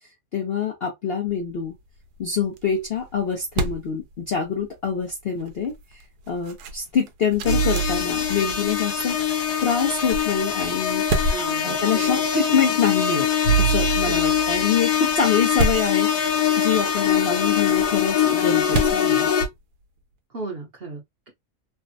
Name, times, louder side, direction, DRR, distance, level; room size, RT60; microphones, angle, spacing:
voice 1, 0.3-1.7 2.2-5.7 6.3-9.2 9.6-11.3 11.6-13.3 13.6-19.3, left 6 dB, 60° left, 0.6 m, -25 dB
sound 1, 1.3-20.0, right 1 dB, 85° right, 1.2 m, -33 dB
sound 2, 7.5-19.5, left 5 dB, 80° left, 1.2 m, -22 dB
voice 2, 11.3-12.2 14.1-14.4 20.3-21.3, right 4 dB, 45° right, 0.9 m, -35 dB
3.3 x 2.1 x 2.6 m
omnidirectional pair, 1.7 m